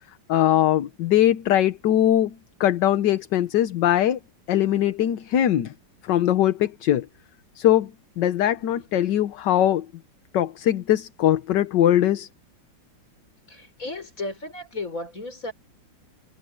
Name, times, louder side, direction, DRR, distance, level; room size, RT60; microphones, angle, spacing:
voice 1, 0.3-4.2 4.5-5.7 6.0-7.1 7.6-7.9 8.2-9.9 10.3-12.3, left 11 dB, 70° left, 1.5 m, -21 dB
voice 2, 13.5-15.5, left 2 dB, 40° left, 5.3 m, -34 dB
omnidirectional pair, 2.1 m